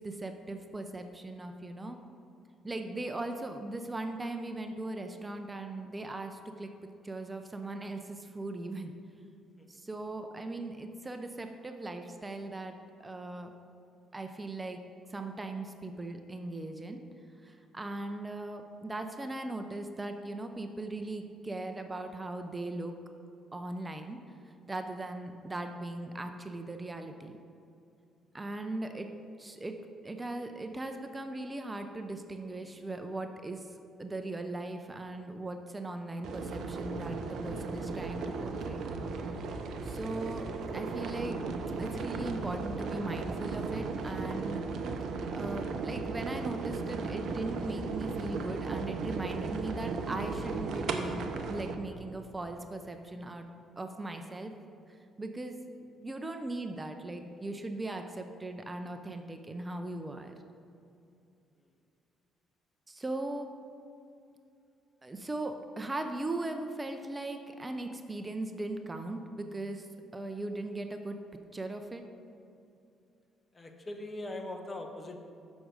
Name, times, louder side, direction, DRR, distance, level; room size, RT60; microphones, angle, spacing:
voice 1, 0.0-2.0 2.6-6.7 7.0-8.9 9.7-13.5 14.1-14.8 15.1-17.0 17.4-22.9 23.5-24.2 24.4-27.3 28.3-29.1 29.4-29.8 30.0-38.8 39.8-40.5 40.7-41.4 41.8-44.6 45.3-53.5 53.8-54.5 54.9-60.3 62.9-63.5 65.0-69.9 70.1-71.2 71.5-72.0, right 2 dB, 25° right, 6 dB, 0.6 m, -39 dB
sound 1, 36.2-51.7, right 4 dB, 65° right, 0.6 m, -36 dB
voice 2, 73.5-75.2, left 1 dB, 30° left, 4 dB, 1.0 m, -41 dB
6.2 x 6.1 x 5.2 m, 2.6 s
hypercardioid pair, 50°, 0 cm